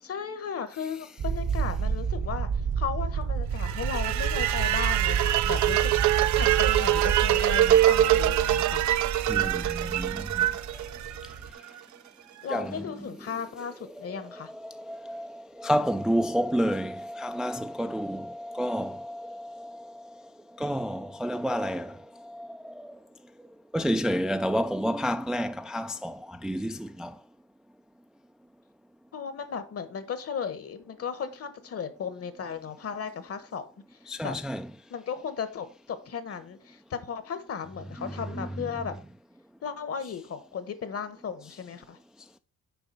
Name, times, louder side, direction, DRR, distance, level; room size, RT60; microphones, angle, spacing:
voice 1, 0.0-2.5 2.8-5.9 6.3-8.9 12.4-14.5 29.1-33.7 34.2-34.4 34.9-38.9 39.6-42.0, left 6 dB, 50° left, 1.2 m, -35 dB
sound 1, 1.2-11.5, right 6 dB, 55° right, 1.1 m, -30 dB
sound 2, 3.6-11.7, right 13 dB, 70° right, 0.5 m, -24 dB
voice 2, 9.3-10.5 10.7-10.8 12.5-12.9 14.0-20.1 20.6-23.0 23.7-27.2 34.1-34.7 38.0-38.5, equal, ahead, 0.3 m, -30 dB
7.0 x 4.9 x 5.4 m
cardioid pair, 90°, 30 cm